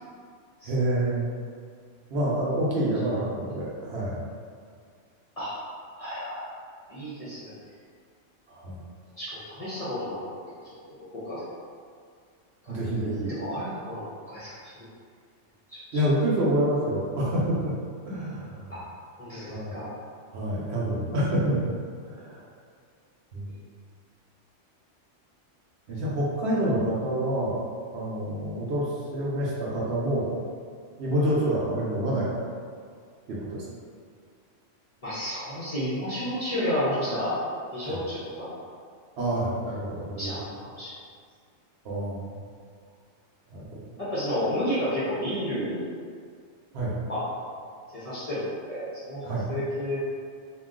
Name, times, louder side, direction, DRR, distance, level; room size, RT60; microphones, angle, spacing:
voice 1, 0.6-1.3 2.1-4.3 8.5-8.8 12.7-13.4 15.9-17.7 18.1-18.8 19.5-19.8 20.3-21.7 22.0-22.5 23.3-23.5 25.9-27.6 27.9-30.3 31.0-32.3 33.3-33.6 37.8-38.0 39.2-40.3 41.8-42.4 43.5-43.8 46.7-46.9 49.2-49.5, right 1 dB, 65° right, -6 dB, 0.9 m, -27 dB
voice 2, 6.0-6.5 6.9-7.5 9.2-10.2 10.5-10.7 11.1-11.5 12.6-12.8 13.3-14.7 15.7-16.0 18.7-18.8 19.2-19.9 23.5-23.6 35.0-37.4 37.7-38.5 40.2-40.9 44.0-46.0 47.1-47.3 47.9-50.1, equal, 40° left, -10 dB, 0.6 m, -31 dB
2.5 x 2.2 x 3.6 m, 2.1 s
omnidirectional pair, 1.2 m